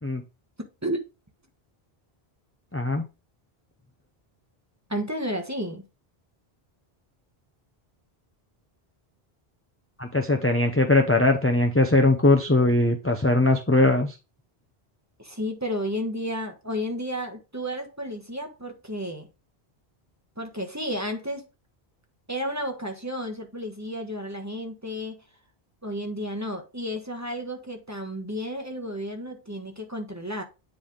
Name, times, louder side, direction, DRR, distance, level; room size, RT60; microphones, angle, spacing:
voice 1, 0.6-1.0 4.9-5.8 15.2-19.3 20.4-21.4 22.3-25.2 25.8-30.4, equal, 15° right, 1.2 m, -32 dB
voice 2, 2.7-3.1 10.0-14.1, left 2 dB, 15° left, 0.7 m, -20 dB
9.7 x 3.4 x 3.6 m
omnidirectional pair, 1.0 m